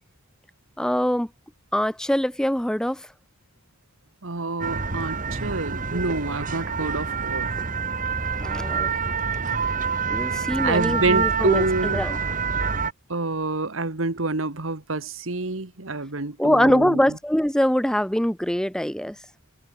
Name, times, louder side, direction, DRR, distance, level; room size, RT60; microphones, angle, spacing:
voice 1, 0.8-1.3 1.7-3.1 8.4-8.9 10.1-11.6 11.9-12.2 16.4-19.2, equal, 5° left, 0.5 m, -23 dB
voice 2, 4.2-7.5 10.6-12.2 13.1-17.2, right 3 dB, 70° right, 1.7 m, -27 dB
sound 1, 4.6-12.9, right 5 dB, 40° right, 1.6 m, -27 dB
head